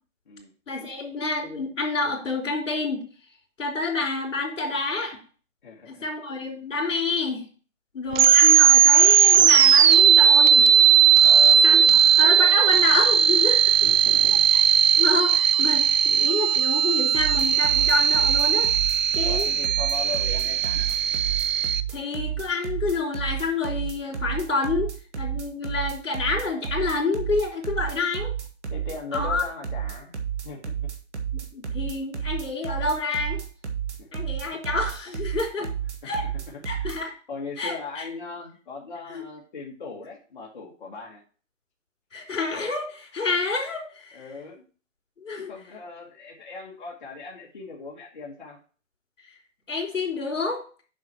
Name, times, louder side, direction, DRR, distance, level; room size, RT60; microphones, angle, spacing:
voice 1, 0.7-3.0 3.6-5.2 5.9-7.4 7.9-10.7 11.6-11.8 12.2-13.6 15.0-18.7 19.1-19.5 21.5-24.9 25.2-28.3 29.1-29.4 31.5-33.4 34.1-35.7 36.0-36.2 36.6-37.1 37.6-38.1 39.1-39.2 42.1-44.2 45.2-45.5 49.7-50.6, left 3 dB, 70° left, 2 dB, 3.3 m, -28 dB
voice 2, 5.6-6.1 11.2-12.1 13.8-14.5 19.2-21.0 28.7-30.2 30.4-30.9 34.0-34.6 35.6-35.7 36.0-36.9 37.3-41.2 44.1-44.6 45.4-48.6, left 4 dB, 40° left, -3 dB, 1.5 m, -39 dB
sound 1, 8.1-21.8, right 9 dB, 85° right, 0.6 m, -18 dB
sound 2, 17.1-37.0, right 8 dB, 60° right, 1.8 m, -31 dB
7.3 x 5.8 x 4.4 m, 0.39 s
hypercardioid pair, 170°, 38 cm